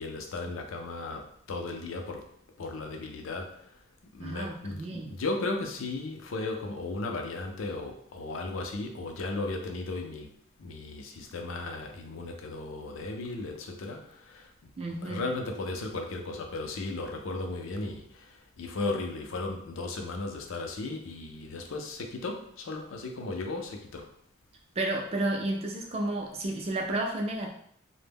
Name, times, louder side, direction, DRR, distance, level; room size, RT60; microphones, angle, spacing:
voice 1, 0.0-2.2 2.6-3.7 4.1-10.3 10.6-14.5 15.0-24.1, left 2 dB, 80° left, 3 dB, 0.5 m, -36 dB
voice 2, 4.2-5.1 14.8-15.2 24.8-27.5, right 2 dB, 30° right, 0 dB, 0.4 m, -32 dB
2.1 x 2.0 x 3.3 m, 0.66 s
head